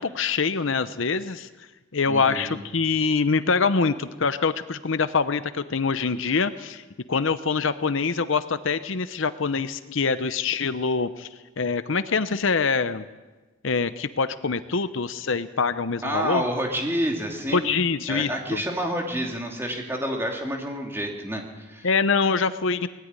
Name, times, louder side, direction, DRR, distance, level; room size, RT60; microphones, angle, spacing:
voice 1, 0.0-1.5 1.9-6.8 7.1-11.3 11.6-13.0 13.6-16.4 17.5-18.6 21.8-22.9, left 4 dB, 65° left, 12 dB, 0.7 m, -24 dB
voice 2, 2.1-2.6 16.0-17.7 18.1-21.9, equal, 10° right, 1 dB, 2.7 m, -29 dB
20.0 x 14.0 x 9.7 m, 1.2 s
head